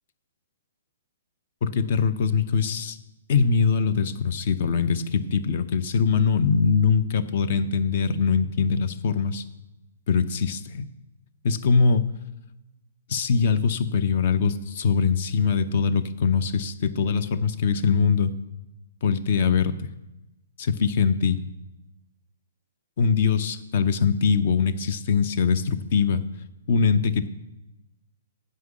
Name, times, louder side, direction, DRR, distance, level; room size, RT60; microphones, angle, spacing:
voice 1, 1.6-3.0 3.3-9.4 10.1-10.9 11.4-12.1 13.1-18.3 19.0-19.9 20.6-21.4 23.0-26.2 26.7-27.3, left 5 dB, 50° left, 14 dB, 0.7 m, -22 dB
9.4 x 5.5 x 7.3 m, 1.0 s
figure-of-eight pair, 120°, 0 cm